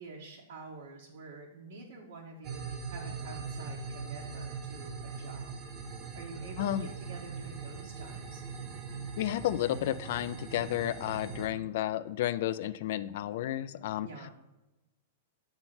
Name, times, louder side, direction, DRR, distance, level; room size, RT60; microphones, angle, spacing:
voice 1, 0.0-5.5 6.1-8.4 11.3-11.7 14.0-14.3, right 3 dB, 70° right, -4 dB, 1.4 m, -48 dB
sound 1, 2.4-11.5, right 5 dB, 25° right, 0.9 m, -41 dB
voice 2, 6.6-6.9 9.2-14.1, left 12 dB, 55° left, 14 dB, 0.3 m, -32 dB
7.8 x 3.9 x 6.0 m, 1.0 s
supercardioid pair, 160°, 0 cm